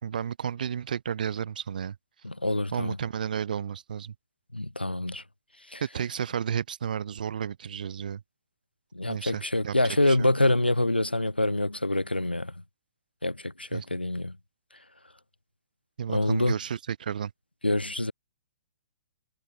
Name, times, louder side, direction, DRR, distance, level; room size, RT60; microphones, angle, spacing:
voice 1, 0.0-2.0 2.7-4.1 5.8-8.2 9.1-9.7 10.1-10.3 13.7-13.9 16.0-17.3, right 8 dB, 55° right, 4.4 m, -32 dB
voice 2, 2.2-3.0 4.5-5.2 5.7-5.8 8.9-12.5 13.2-14.3 16.1-16.6 17.6-18.1, left 1 dB, 85° left, 3.7 m, -26 dB
figure-of-eight pair, 120°, 5 cm